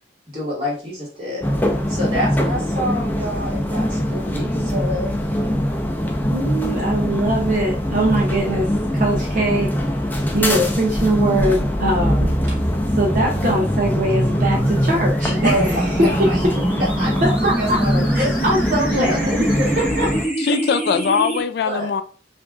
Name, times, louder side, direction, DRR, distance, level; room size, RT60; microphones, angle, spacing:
voice 1, 0.3-1.5 1.9-5.2 15.4-16.4 17.0-18.4 18.9-19.9 21.6-22.0, equal, 30° right, 2.0 m, -27 dB
sound 1, 1.4-20.3, equal, 10° left, 0.5 m, -23 dB
voice 2, 6.3-9.7 10.3-12.6 12.9-16.3 17.2-17.8 18.1-19.5 19.8-20.1, right 1 dB, 45° right, 0.7 m, -22 dB
sound 2, 11.4-21.4, right 1 dB, 10° right, 1.2 m, -25 dB
voice 3, 20.4-22.0, left 6 dB, 60° left, 0.3 m, -21 dB
5.5 x 2.6 x 2.4 m
head